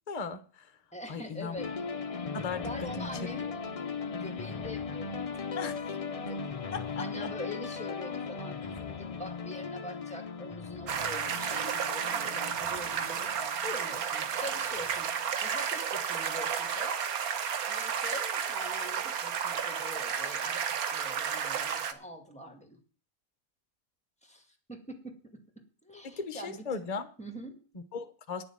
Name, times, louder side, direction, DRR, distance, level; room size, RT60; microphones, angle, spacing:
voice 1, 0.0-0.8 1.1-1.6 2.3-2.7 3.0-3.1 5.5-5.9 6.7-7.3 26.0-27.1 27.7-28.4, left 5 dB, 30° left, 10 dB, 1.0 m, -37 dB
voice 2, 0.9-1.7 2.6-3.5 4.1-5.3 6.1-6.5 7.0-15.1 15.4-17.4 17.7-22.8 24.2-25.1 25.8-26.9 27.2-27.6, left 1 dB, 5° left, 6 dB, 2.1 m, -44 dB
sound 1, 1.6-15.3, left 5 dB, 50° left, 0.4 m, -38 dB
sound 2, 10.9-21.9, right 7 dB, 85° right, 1.5 m, -32 dB
10.0 x 7.0 x 8.7 m, 0.40 s
omnidirectional pair, 1.5 m